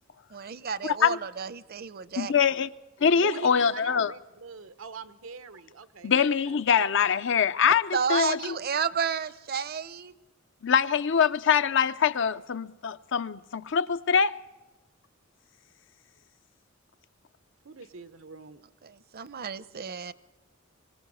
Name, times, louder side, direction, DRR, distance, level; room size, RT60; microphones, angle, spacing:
voice 1, 0.3-2.3 7.9-10.1 18.8-20.1, right 6 dB, 50° right, 0.7 m, -31 dB
voice 2, 0.8-1.2 2.2-2.7 3.0-4.1 6.0-8.6 10.6-14.3, left 7 dB, 65° left, 0.6 m, -24 dB
voice 3, 3.2-6.1 6.4-7.1 17.6-18.6, right 4 dB, 90° right, 1.0 m, -44 dB
25.0 x 17.5 x 6.3 m
head